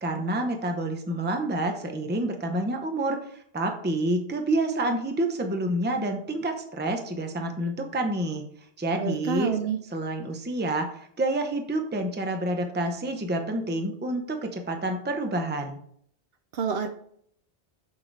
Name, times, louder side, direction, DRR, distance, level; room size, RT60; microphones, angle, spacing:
voice 1, 0.0-8.4 8.8-9.5 9.9-15.8, right 1 dB, 10° right, 5 dB, 0.5 m, -28 dB
voice 2, 9.0-9.8 16.5-16.9, right 6 dB, 65° right, 8 dB, 0.7 m, -27 dB
6.5 x 6.2 x 3.3 m, 0.66 s
omnidirectional pair, 1.2 m